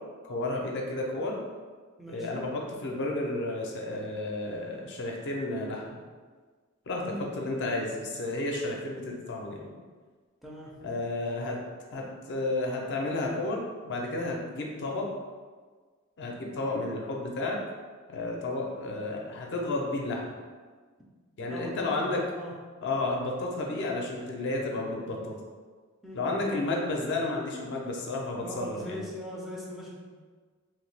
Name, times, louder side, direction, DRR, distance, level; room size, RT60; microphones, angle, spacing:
voice 1, 0.2-1.4 2.1-5.8 6.9-7.0 7.4-9.7 10.8-11.6 11.9-15.1 16.2-17.6 18.1-20.3 21.4-22.2 22.8-25.3 26.1-29.0, left 2 dB, 55° left, -1 dB, 0.5 m, -32 dB
voice 2, 2.0-2.4 7.0-7.3 10.4-10.7 21.5-22.5 26.0-26.3 28.4-30.0, equal, ahead, -5 dB, 0.4 m, -40 dB
3.0 x 2.2 x 3.2 m, 1.5 s
head